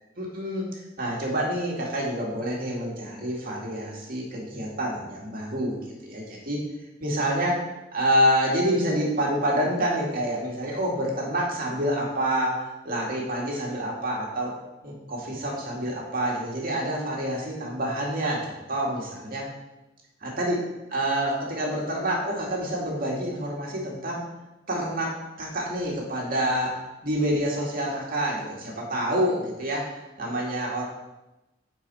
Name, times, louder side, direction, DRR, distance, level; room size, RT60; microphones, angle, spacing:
voice 1, 0.2-0.7 1.0-5.8 6.0-6.6 7.0-7.6 7.9-14.5 14.8-19.5 20.4-20.6 20.9-24.2 24.7-29.8 30.2-30.8, equal, 50° right, -2 dB, 2.1 m, -27 dB
10.0 x 4.8 x 4.2 m, 0.98 s
head